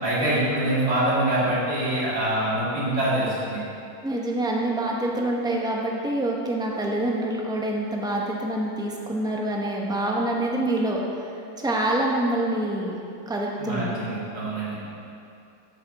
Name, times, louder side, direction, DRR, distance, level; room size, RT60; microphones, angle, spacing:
voice 1, 0.0-3.6 13.6-14.8, right 1 dB, 65° right, -8 dB, 3.0 m, -24 dB
voice 2, 4.0-11.3 11.6-13.0 13.3-13.9, right 1 dB, 5° right, -2 dB, 0.5 m, -26 dB
14.0 x 5.8 x 4.1 m, 2.6 s
omnidirectional pair, 1.9 m